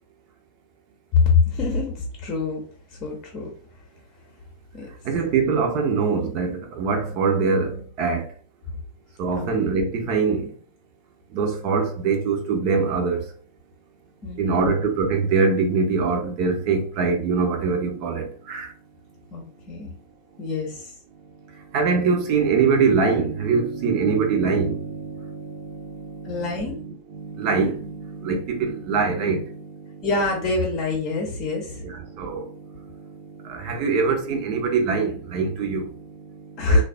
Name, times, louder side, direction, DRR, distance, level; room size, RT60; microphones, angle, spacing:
voice 1, 1.1-2.6 3.0-3.5 4.7-4.9 9.4-9.5 14.2-14.7 19.3-19.9 20.4-20.9 26.2-26.8 30.0-31.8 36.6-36.8, left 4 dB, 35° left, 0.7 m, -24 dB
voice 2, 5.0-8.3 9.2-10.5 11.3-13.2 14.4-18.7 21.7-30.1 31.7-36.8, right 5 dB, 45° right, 0.6 m, -24 dB
3.3 x 2.3 x 2.4 m
figure-of-eight pair, 90°, 0 cm